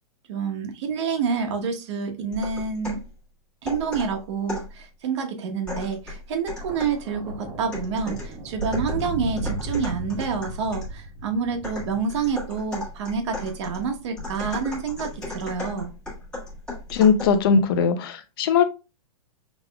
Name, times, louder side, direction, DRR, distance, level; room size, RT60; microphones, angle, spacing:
voice 1, 0.3-3.0 3.6-15.9, right 5 dB, 50° right, 1.1 m, -28 dB
sound 1, 2.3-3.1 3.7-4.8 5.7-7.1 7.7-11.0 11.6-17.5, left 2 dB, 5° left, 1.5 m, -36 dB
Thunder, 6.5-12.9 13.8-14.1, right 2 dB, 20° right, 1.3 m, -35 dB
voice 2, 16.9-18.6, left 6 dB, 40° left, 0.6 m, -19 dB
6.3 x 3.6 x 2.3 m
hypercardioid pair, 165°, 19 cm